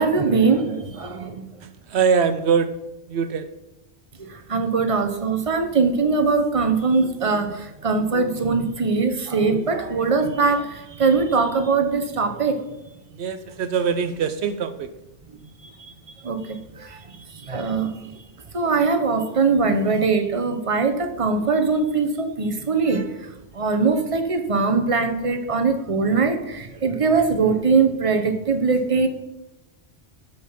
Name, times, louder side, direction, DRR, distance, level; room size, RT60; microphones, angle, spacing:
voice 1, 0.0-1.5 4.2-12.6 15.8-15.9 16.2-17.0 17.5-18.0 18.5-23.1 23.5-29.1, right 4 dB, 30° right, 6 dB, 1.1 m, -21 dB
voice 2, 1.6-2.7 3.1-3.5 13.1-14.9, right 6 dB, 75° right, 10 dB, 0.9 m, -23 dB
12.5 x 5.3 x 5.7 m, 0.93 s
omnidirectional pair, 1.1 m